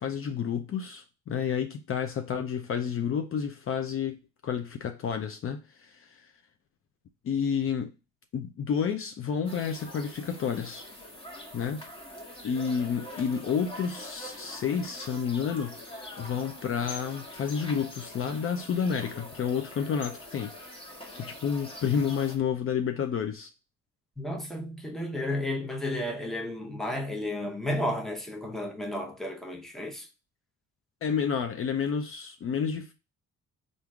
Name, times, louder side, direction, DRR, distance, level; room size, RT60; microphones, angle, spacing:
voice 1, 0.0-6.2 7.2-7.9 8.3-10.8 11.5-11.8 12.4-15.8 16.2-20.5 21.2-23.5 31.0-32.9, left 7 dB, 45° left, 0.5 m, -30 dB
sound 1, 9.4-22.4, left 1 dB, 20° left, 1.3 m, -44 dB
voice 2, 24.2-30.1, left 1 dB, ahead, 0.8 m, -32 dB
3.5 x 2.6 x 4.5 m
cardioid pair, 90°, 30 cm